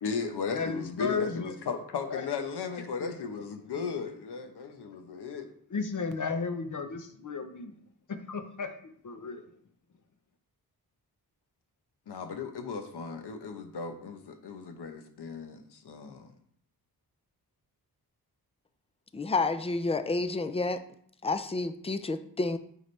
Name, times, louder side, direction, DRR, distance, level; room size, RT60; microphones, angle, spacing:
voice 1, 0.0-5.5 12.1-16.3, left 5 dB, 80° left, 1.0 m, -36 dB
voice 2, 0.5-1.5 2.1-2.2 5.7-7.7 8.3-8.7 9.0-9.4, left 4 dB, 50° left, 0.8 m, -34 dB
voice 3, 19.1-20.8 21.2-22.6, left 3 dB, 15° left, 0.4 m, -30 dB
9.2 x 5.0 x 3.3 m
wide cardioid pair, 150°, 39 cm